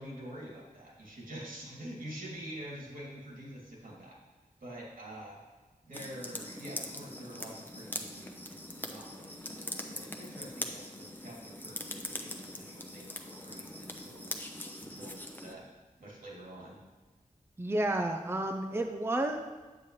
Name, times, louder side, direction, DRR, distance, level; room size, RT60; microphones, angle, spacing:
voice 1, 0.0-4.2 4.6-5.4 5.8-14.4 14.8-15.6 16.0-16.8, right 1 dB, 75° right, -4 dB, 2.6 m, -46 dB
sound 1, 5.9-15.5, left 1 dB, 15° left, 0.8 m, -42 dB
voice 2, 17.6-19.4, right 1 dB, 15° right, 4 dB, 0.6 m, -31 dB
8.6 x 7.4 x 3.3 m, 1.3 s
wide cardioid pair, 65°, 14 cm